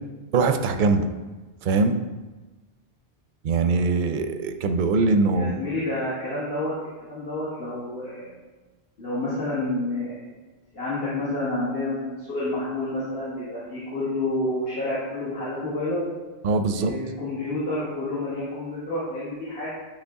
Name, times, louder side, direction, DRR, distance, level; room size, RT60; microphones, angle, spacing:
voice 1, 0.3-1.1 1.6-2.0 3.4-5.5 16.4-16.9, right 3 dB, 55° right, 7 dB, 0.6 m, -22 dB
voice 2, 5.3-6.7 7.0-8.4 9.0-10.3 10.7-16.0 16.7-19.7, left 2 dB, 65° left, -10 dB, 1.9 m, -29 dB
10.0 x 3.4 x 3.6 m, 1.2 s
omnidirectional pair, 1.1 m